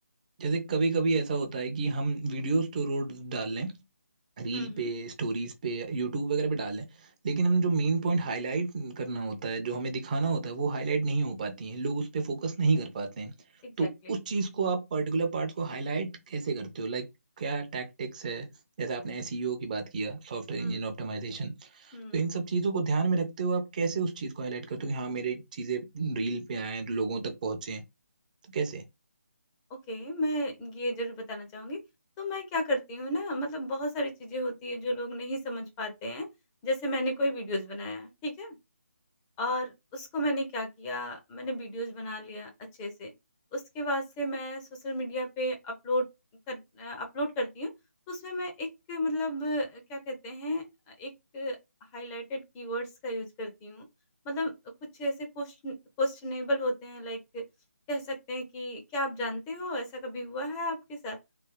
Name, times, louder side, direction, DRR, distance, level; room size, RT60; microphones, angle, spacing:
voice 1, 0.4-3.7 4.4-6.9 7.2-13.3 13.8-17.0 17.4-18.5 18.8-27.8 28.5-28.8, right 4 dB, 30° right, 0.7 m, -30 dB
voice 2, 4.5-4.9 13.6-13.9 20.6-20.8 21.9-22.2 29.9-31.8 32.2-36.3 36.6-38.5 39.4-42.5 42.8-43.1 43.5-46.0 46.5-47.7 48.1-51.6 51.9-53.9 54.2-54.5 55.0-57.4 57.9-61.2, left 1 dB, 15° left, 0.7 m, -33 dB
3.3 x 2.7 x 3.6 m
figure-of-eight pair, 155°, 8 cm